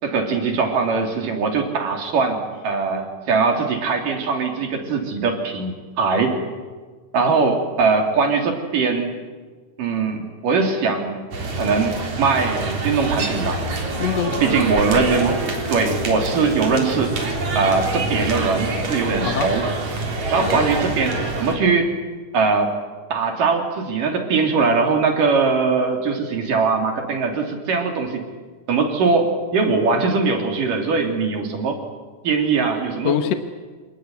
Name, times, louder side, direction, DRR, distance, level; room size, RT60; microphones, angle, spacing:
voice 1, 0.0-6.4 7.1-9.1 9.8-11.3 11.6-13.6 14.4-17.2 17.6-19.7 20.3-21.9 22.3-22.7 23.1-28.2 28.7-31.8 32.2-33.1, right 4 dB, 85° right, 3 dB, 4.7 m, -21 dB
sound 1, 11.3-21.6, right 2 dB, 60° right, 5.0 m, -26 dB
voice 2, 14.0-14.6 19.2-19.5 20.4-20.7 33.0-33.3, left 9 dB, 60° left, 7 dB, 2.0 m, -24 dB
27.5 x 19.0 x 9.6 m, 1.5 s
omnidirectional pair, 3.7 m